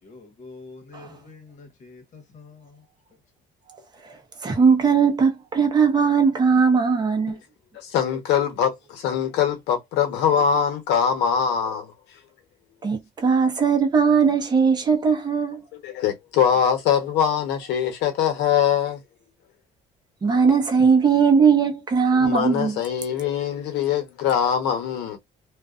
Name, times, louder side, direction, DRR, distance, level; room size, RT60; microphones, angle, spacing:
voice 1, 0.0-2.8, left 3 dB, 45° left, 1.1 m, -46 dB
voice 2, 4.4-7.4 12.8-15.6 20.2-22.8, right 5 dB, 25° right, 0.8 m, -19 dB
voice 3, 7.8-11.9 15.7-19.0 22.2-25.2, left 8 dB, 85° left, 1.0 m, -23 dB
2.4 x 2.4 x 2.3 m
cardioid pair, 110°, 17 cm